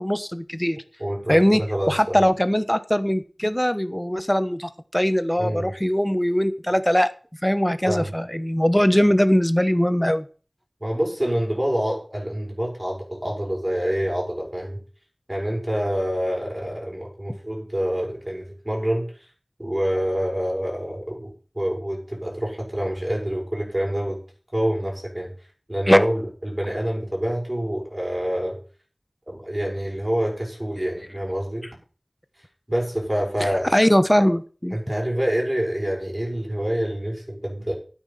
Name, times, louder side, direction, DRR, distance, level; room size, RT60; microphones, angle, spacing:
voice 1, 0.0-0.8 1.3-1.6 1.9-7.1 7.4-10.2 25.9-26.0 33.4-34.8, equal, 10° left, 12 dB, 1.1 m, -20 dB
voice 2, 1.0-2.2 5.4-5.7 7.9-8.1 10.8-14.8 15.3-19.1 19.6-24.2 24.5-25.3 25.7-28.6 29.3-31.7 32.7-33.7 34.7-37.7, equal, 25° right, -2 dB, 6.6 m, -27 dB
12.5 x 9.1 x 5.7 m, 0.39 s
wide cardioid pair, 45°, 0 cm